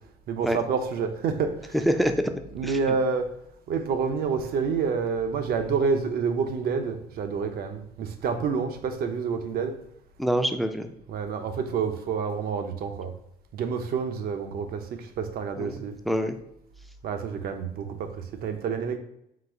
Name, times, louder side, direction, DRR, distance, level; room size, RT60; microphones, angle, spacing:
voice 1, 0.3-1.7 2.5-3.3 3.7-9.8 11.1-13.1 13.5-16.0 17.0-18.1 18.4-19.0, right 5 dB, 65° right, 7 dB, 0.6 m, -28 dB
voice 2, 1.7-2.1 2.6-2.8 10.2-10.9 15.6-16.3, equal, ahead, 7 dB, 0.3 m, -25 dB
3.9 x 2.5 x 4.5 m, 0.78 s
cardioid pair, 110°, 17 cm